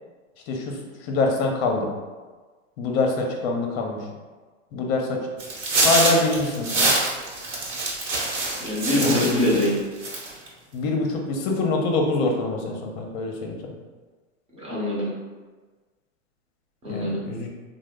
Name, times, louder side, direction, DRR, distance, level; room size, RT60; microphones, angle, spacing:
voice 1, 0.5-1.9 2.8-4.0 4.7-5.2 5.8-6.9 9.0-9.4 10.7-13.6 16.9-17.5, left 3 dB, 50° left, 1 dB, 0.7 m, -24 dB
sound 1, 5.4-9.7 10.0-10.5, right 2 dB, 40° right, 1.0 m, -25 dB
voice 2, 8.6-9.7 14.5-15.1 16.8-17.2, left 1 dB, 15° right, -6 dB, 0.8 m, -24 dB
2.9 x 2.0 x 3.5 m, 1.4 s
hypercardioid pair, 125°, 41 cm